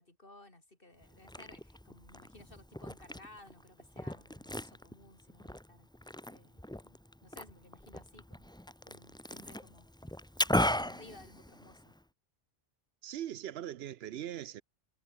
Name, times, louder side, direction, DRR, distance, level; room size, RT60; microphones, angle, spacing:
voice 1, 0.0-5.9 6.3-8.5 8.8-9.9 10.7-11.9, left 2 dB, 60° left, 4.7 m, -57 dB
Liquid, 1.0-12.0, left 1 dB, 5° left, 0.8 m, -38 dB
voice 2, 13.0-14.6, right 11 dB, 75° right, 0.9 m, -40 dB
omnidirectional pair, 1.0 m